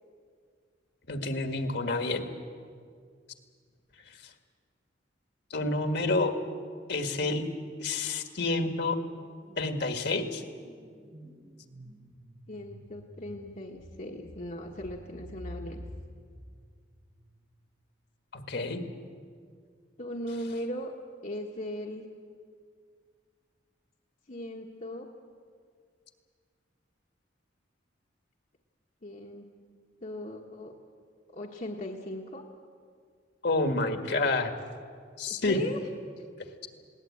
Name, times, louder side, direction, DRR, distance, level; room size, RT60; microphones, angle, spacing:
voice 1, 1.1-2.2 5.5-6.3 6.9-7.4 7.8-9.0 9.6-10.4 18.3-18.8 33.4-34.5 35.2-35.6, left 3 dB, 60° left, 6 dB, 1.8 m, -28 dB
sound 1, 8.0-8.3 8.6-17.4, equal, 20° right, 1.3 m, -49 dB
voice 2, 12.5-15.8 20.0-21.0 21.2-22.0 24.3-25.1 29.0-29.4 30.0-30.7 31.3-32.4 35.3-35.8, left 1 dB, 45° left, -1 dB, 1.3 m, -38 dB
20.5 x 18.0 x 8.6 m, 2.1 s
head